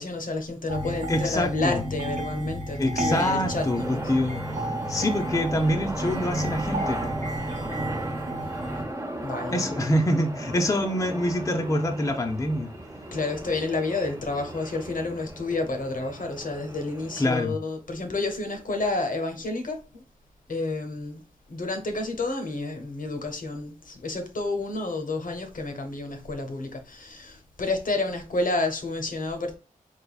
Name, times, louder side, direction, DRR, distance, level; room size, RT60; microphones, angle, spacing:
voice 1, 0.0-4.0 9.2-9.7 13.1-20.0 20.5-21.2 21.5-29.6, left 2 dB, 70° left, 0.8 m, -30 dB
sound 1, 0.7-8.8, right 1 dB, 55° right, 0.8 m, -32 dB
voice 2, 1.1-1.8 2.8-4.4 4.9-7.1 9.5-12.7 17.2-17.6, left 1 dB, 25° left, 0.5 m, -25 dB
sound 2, 3.1-17.4, right 1 dB, 20° right, 0.6 m, -37 dB
3.4 x 3.2 x 2.3 m
wide cardioid pair, 60°, 14 cm